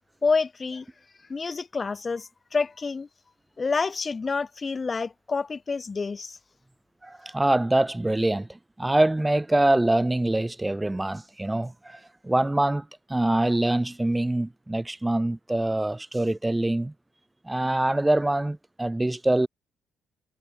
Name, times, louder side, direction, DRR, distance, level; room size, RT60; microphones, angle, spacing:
voice 1, 0.2-0.8 1.3-3.1 3.6-6.4, left 4 dB, 30° left, 1.3 m, -28 dB
voice 2, 7.0-16.9 17.4-19.5, right 1 dB, 10° right, 1.3 m, -24 dB
cardioid pair, 90°, 0 cm